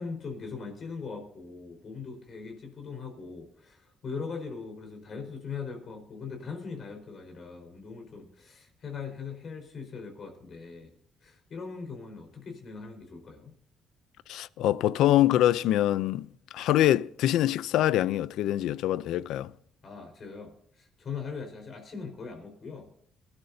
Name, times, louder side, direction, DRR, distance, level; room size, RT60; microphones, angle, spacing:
voice 1, 0.0-10.9 11.2-13.5 19.8-22.9, left 5 dB, 45° left, 4.7 m, -40 dB
voice 2, 14.3-19.5, left 13 dB, 85° left, 0.5 m, -24 dB
22.5 x 12.5 x 2.8 m
cardioid pair, 130°, 0 cm